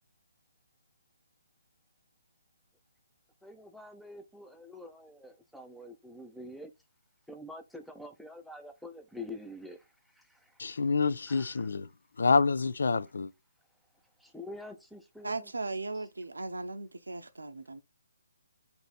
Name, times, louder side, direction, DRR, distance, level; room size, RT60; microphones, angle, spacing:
voice 1, 3.4-6.7 7.3-10.8 11.3-11.7 14.2-15.5, left 2 dB, ahead, 0.5 m, -47 dB
voice 2, 10.6-11.9 12.2-13.3, left 4 dB, 65° left, 0.3 m, -27 dB
voice 3, 15.2-17.8, right 3 dB, 75° right, 0.6 m, -37 dB
3.8 x 2.7 x 4.1 m
figure-of-eight pair, 140°, 0 cm